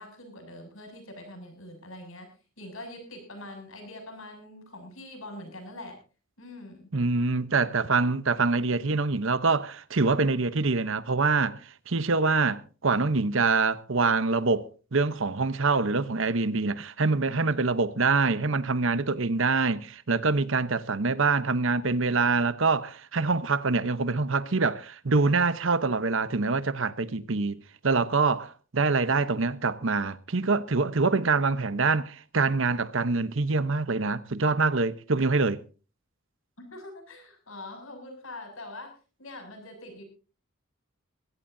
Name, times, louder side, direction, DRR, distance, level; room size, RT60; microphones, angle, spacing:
voice 1, 0.0-2.3 2.6-6.0 6.4-6.9 29.1-29.3 36.6-40.0, left 1 dB, 75° left, 7.2 m, -43 dB
voice 2, 6.9-11.6 11.9-35.6, right 4 dB, 65° right, 0.9 m, -25 dB
22.0 x 16.5 x 2.7 m
head